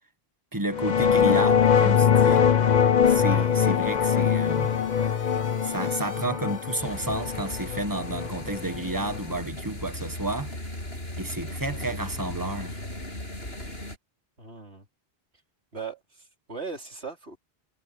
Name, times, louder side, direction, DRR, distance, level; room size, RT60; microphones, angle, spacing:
voice 1, 0.5-2.5 3.1-4.8 5.6-10.5 11.2-12.8, right 2 dB, 20° right, 1.3 m, -31 dB
sound 1, 0.7-9.4, left 7 dB, 50° left, 0.8 m, -22 dB
sound 2, 2.5-7.5, left 1 dB, 15° left, 2.7 m, -47 dB
sound 3, 6.8-14.0, left 1 dB, 75° left, 8.5 m, -37 dB
voice 2, 14.4-14.9 15.7-17.4, right 5 dB, 90° right, 4.8 m, -38 dB
omnidirectional pair, 1.1 m